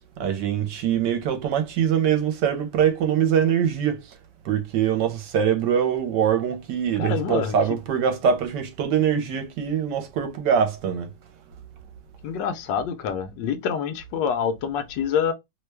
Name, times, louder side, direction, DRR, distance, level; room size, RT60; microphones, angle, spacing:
voice 1, 0.2-4.0 4.4-11.1, right 8 dB, 75° right, 1.2 m, -23 dB
voice 2, 7.0-7.6 12.2-15.3, left 7 dB, 80° left, 1.2 m, -26 dB
3.1 x 2.2 x 3.2 m
omnidirectional pair, 2.0 m